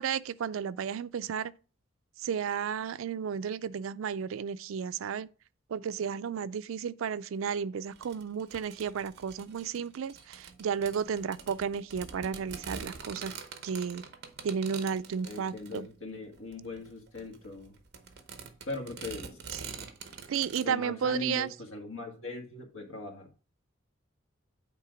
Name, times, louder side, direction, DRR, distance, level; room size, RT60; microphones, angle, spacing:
voice 1, 0.0-1.5 2.2-5.3 5.7-13.3 13.6-14.0 14.4-15.9 19.5-19.8 20.3-21.5, right 7 dB, 80° right, 0.4 m, -33 dB
sound 1, 7.9-20.6, right 5 dB, 55° right, 0.9 m, -45 dB
voice 2, 15.2-17.7 18.6-19.4 20.6-23.3, left 3 dB, 75° left, 1.6 m, -40 dB
8.5 x 3.3 x 4.9 m
head